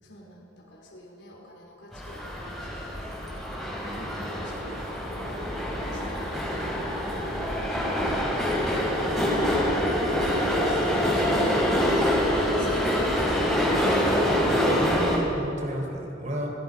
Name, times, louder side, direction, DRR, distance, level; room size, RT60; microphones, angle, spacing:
voice 1, 0.0-9.1 9.9-13.4, equal, 70° left, -1 dB, 4.9 m, -49 dB
sound 1, 1.9-15.2, equal, ahead, 5.2 m, -25 dB
voice 2, 14.4-16.5, equal, 40° right, 0 dB, 4.3 m, -33 dB
30.0 x 17.0 x 5.6 m, 3.0 s
head